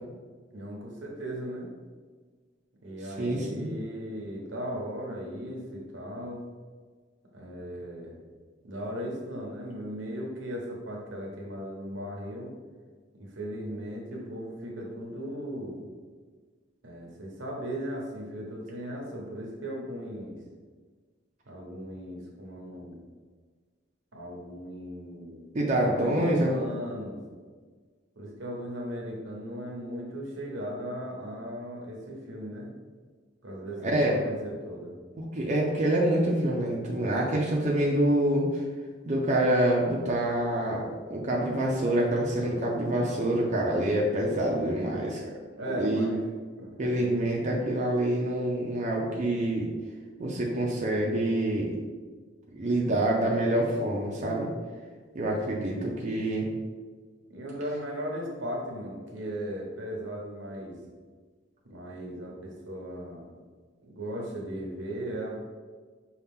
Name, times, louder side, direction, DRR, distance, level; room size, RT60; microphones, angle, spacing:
voice 1, 0.5-1.7 2.8-6.4 7.3-8.1 8.6-12.5 13.1-15.9 16.8-20.4 21.5-23.0 24.1-25.5 25.8-27.2 28.2-32.7 33.4-35.0 45.5-46.2 46.6-47.3 57.3-60.8 61.6-63.3 63.8-65.4, equal, 85° right, -1 dB, 1.0 m, -37 dB
voice 2, 3.2-3.7 25.5-26.6 33.8-34.2 35.2-38.5 39.1-45.2 45.8-46.1 46.8-49.7 50.2-51.7 52.5-54.5 55.1-56.5, right 1 dB, 40° right, -3 dB, 0.6 m, -26 dB
5.6 x 2.4 x 3.6 m, 1.5 s
head